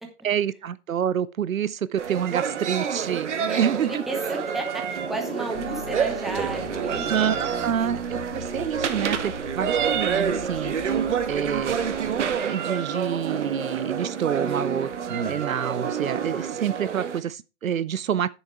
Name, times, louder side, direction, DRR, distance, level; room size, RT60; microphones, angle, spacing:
voice 1, 0.2-4.0 7.1-10.7 11.3-14.9 15.3-18.3, right 9 dB, 70° right, 0.7 m, -27 dB
sound 1, 2.0-17.2, right 7 dB, 55° right, 1.5 m, -28 dB
sound 2, 2.2-3.0 4.3-5.1 6.8-7.7 9.6-10.4 12.3-13.1 15.1-15.8, right 8 dB, 35° right, 0.9 m, -33 dB
voice 2, 3.4-7.1, right 2 dB, ahead, 1.0 m, -33 dB
sound 3, 5.5-12.4, left 6 dB, 35° left, 1.5 m, -42 dB
8.8 x 7.1 x 4.5 m
hypercardioid pair, 150°, 43 cm